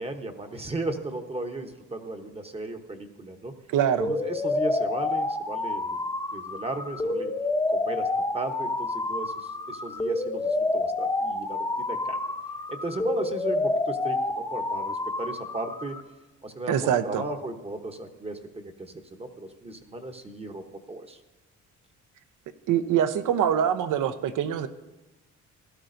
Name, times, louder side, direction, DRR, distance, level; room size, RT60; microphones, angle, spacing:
voice 1, 0.0-3.5 4.1-6.0 6.3-7.3 7.7-8.1 8.3-12.2 12.7-16.0 16.4-21.2, right 2 dB, 20° right, 5 dB, 0.8 m, -35 dB
voice 2, 3.7-4.1 16.7-17.2 22.7-24.7, right 9 dB, 75° right, 11 dB, 0.8 m, -24 dB
sound 1, 4.0-16.0, left 2 dB, 10° left, 0.7 m, -29 dB
16.0 x 12.5 x 2.6 m, 1.1 s
cardioid pair, 130°, 31 cm